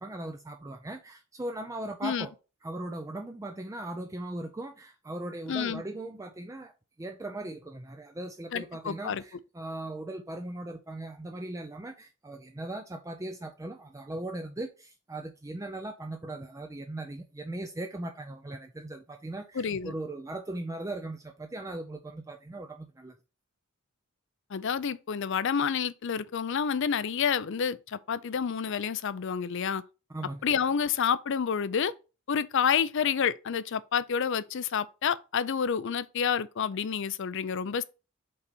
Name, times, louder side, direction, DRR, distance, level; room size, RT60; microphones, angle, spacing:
voice 1, 0.0-2.3 2.6-6.7 7.0-23.1 30.1-30.5, right 1 dB, 15° right, 0.4 m, -39 dB
voice 2, 5.5-5.8 8.5-9.2 19.5-19.9 24.5-29.8 30.4-31.9 32.3-37.8, left 7 dB, 60° left, 0.4 m, -29 dB
5.4 x 4.0 x 5.0 m
head